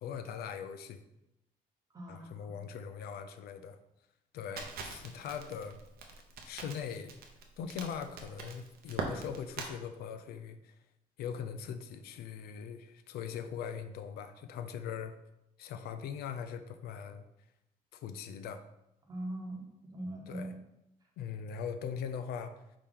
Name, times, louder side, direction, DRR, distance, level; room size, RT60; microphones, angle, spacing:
voice 1, 0.0-1.0 2.1-3.8 4.3-5.8 6.4-7.2 7.6-10.7 11.2-15.2 15.6-17.2 17.9-18.6 20.3-20.5 21.2-22.6, left 7 dB, 85° left, 9 dB, 0.4 m, -41 dB
voice 2, 1.9-2.5 19.1-20.5, right 1 dB, 25° right, 0 dB, 1.0 m, -41 dB
Crackle, 4.6-9.7, right 5 dB, 75° right, 0.7 m, -42 dB
5.0 x 2.8 x 3.6 m, 0.86 s
cardioid pair, 135°, 16 cm